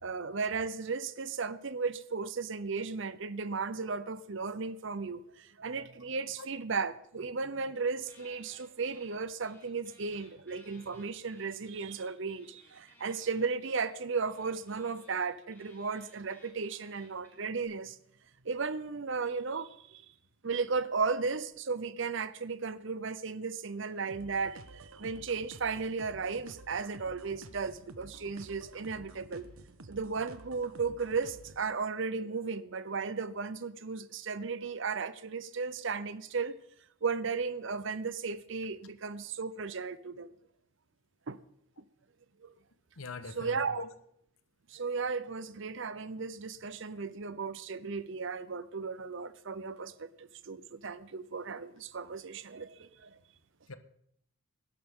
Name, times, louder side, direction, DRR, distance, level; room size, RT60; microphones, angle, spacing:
voice 1, 0.0-18.0 18.4-20.0 20.4-29.5 29.9-36.5 37.0-40.3 41.3-41.4 42.4-42.5 43.4-43.8 44.7-53.2, right 4 dB, 55° right, 0.7 m, -35 dB
sound 1, 8.0-9.1 9.4-17.6, left 1 dB, 10° left, 5.9 m, -61 dB
sound 2, 24.1-31.7, right 2 dB, 75° right, 1.2 m, -51 dB
voice 2, 43.0-43.9 53.7-53.8, left 3 dB, 75° left, 1.2 m, -42 dB
18.5 x 11.5 x 3.7 m
head